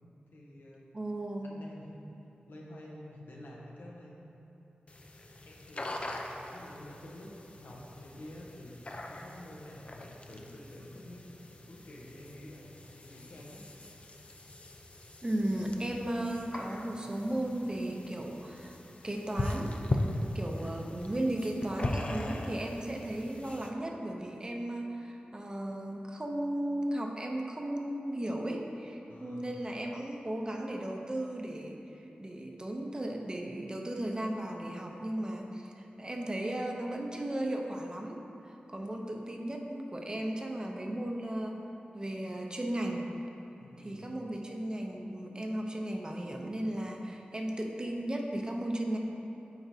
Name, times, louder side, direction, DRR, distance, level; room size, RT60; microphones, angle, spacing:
voice 1, 0.3-0.9 1.4-2.1 2.5-4.3 5.4-6.2 6.5-12.7 13.0-13.7 29.1-29.6 43.6-44.1, left 1 dB, 90° left, -3 dB, 0.8 m, -49 dB
voice 2, 0.9-1.6 15.2-18.8 19.0-19.7 20.3-38.2 38.5-41.6 41.9-43.1 43.8-49.0, right 1 dB, 25° right, 1 dB, 0.5 m, -35 dB
sound 1, 4.9-23.7, left 1 dB, 40° left, 0.4 m, -40 dB
8.0 x 4.6 x 2.7 m, 2.9 s
wide cardioid pair, 80°, 3 cm